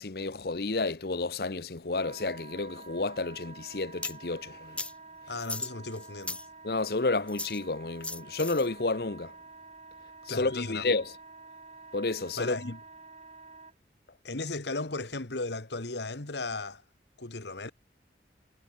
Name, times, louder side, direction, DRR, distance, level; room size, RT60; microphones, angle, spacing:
voice 1, 0.0-4.8 6.6-9.3 10.3-11.0 11.9-12.7, left 3 dB, 60° left, 0.9 m, -31 dB
Wind instrument woodwind instrument, 1.9-13.7, right 3 dB, 35° right, 4.1 m, -49 dB
sound 1, 4.0-4.2 4.8-4.9 5.4-6.5 7.3-7.6 8.0-8.7, left 2 dB, 5° left, 4.6 m, -37 dB
voice 2, 5.3-6.4 10.3-10.9 12.4-12.8 14.2-16.8 17.2-17.7, left 3 dB, 80° left, 1.9 m, -36 dB
head